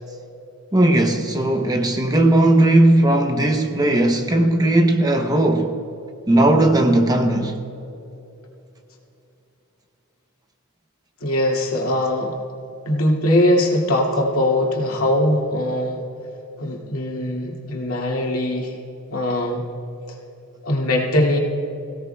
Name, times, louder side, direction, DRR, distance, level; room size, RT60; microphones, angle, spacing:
voice 1, 0.7-5.8 6.3-7.6, right 1 dB, 15° right, 0.7 m, -17 dB
voice 2, 11.2-12.4 12.9-16.0 16.6-18.8 19.1-19.7 20.6-21.4, left 1 dB, 70° left, 2.2 m, -21 dB
23.0 x 16.5 x 2.3 m
head